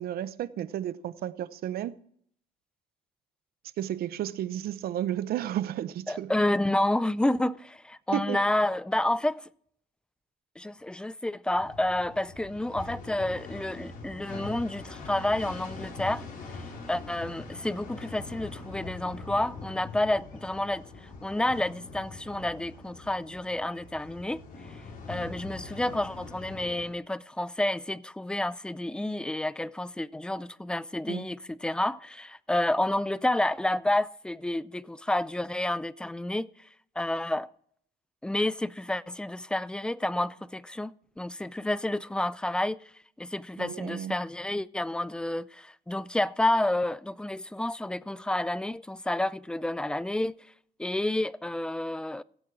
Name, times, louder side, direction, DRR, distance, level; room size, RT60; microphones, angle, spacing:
voice 1, 0.0-1.9 3.8-6.3 8.1-8.4 31.1-31.2 43.6-44.1, right 11 dB, 65° right, 0.8 m, -32 dB
voice 2, 6.1-9.5 10.6-24.4 25.1-36.5 37.0-37.5 38.2-42.8 43.2-50.4 50.8-52.2, left 1 dB, 5° left, 0.4 m, -30 dB
sound 1, 11.5-26.9, left 3 dB, 55° left, 4.6 m, -43 dB
16.0 x 8.2 x 6.0 m
cardioid pair, 110°, 17 cm